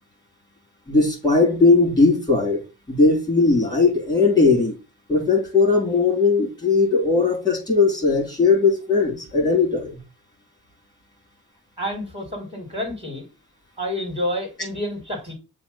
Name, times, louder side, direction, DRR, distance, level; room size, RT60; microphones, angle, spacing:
voice 1, 0.9-2.6 2.9-4.8 5.1-10.0, left 3 dB, 10° left, 3.7 m, -18 dB
voice 2, 11.8-13.2 13.8-15.3, left 1 dB, 15° right, 3.7 m, -29 dB
7.0 x 2.8 x 5.6 m
supercardioid pair, 40°, 37 cm